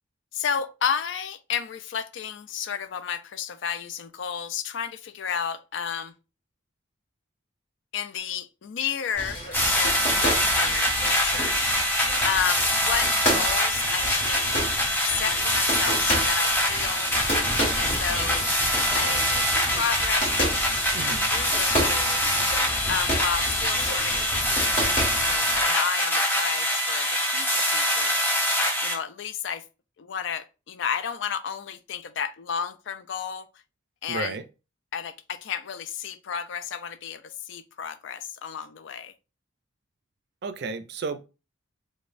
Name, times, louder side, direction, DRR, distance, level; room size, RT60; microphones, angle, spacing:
voice 1, 0.3-6.1 7.9-11.7 12.2-14.4 15.0-17.1 17.8-18.4 18.9-20.5 21.3-22.4 22.9-24.8 25.2-28.2 28.8-29.6 30.0-33.5 34.0-34.4 34.9-39.1, left 7 dB, 65° left, 0.3 m, -32 dB
sound 1, 9.1-25.7, equal, 40° left, 1.6 m, -31 dB
sound 2, 9.5-28.9, equal, 10° left, 0.7 m, -24 dB
voice 2, 20.9-21.3 34.1-34.4 40.4-41.3, right 4 dB, 50° right, 0.4 m, -32 dB
5.0 x 2.1 x 2.5 m
head